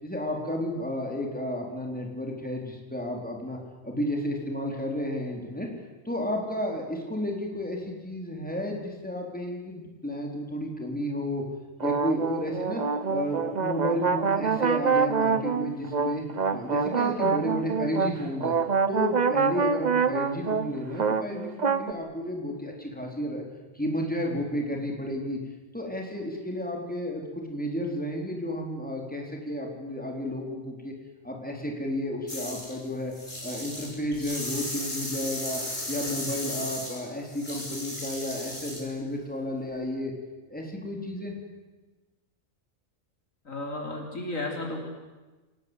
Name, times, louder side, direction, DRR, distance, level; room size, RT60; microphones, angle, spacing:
voice 1, 0.0-3.6 3.8-5.7 6.0-11.4 11.8-12.8 13.1-16.2 16.5-18.5 18.9-23.4 23.7-25.4 25.7-30.9 31.2-33.1 33.4-35.6 35.9-40.1 40.5-41.4, equal, 5° left, 1 dB, 4.3 m, -32 dB
sound 1, 11.8-21.9, right 5 dB, 35° right, 0.9 m, -26 dB
sound 2, 32.3-32.8 33.1-38.9, left 1 dB, 40° left, 6.1 m, -35 dB
voice 2, 43.4-44.8, left 2 dB, 90° left, 1 dB, 4.8 m, -33 dB
27.5 x 19.5 x 8.3 m, 1.2 s
omnidirectional pair, 1.3 m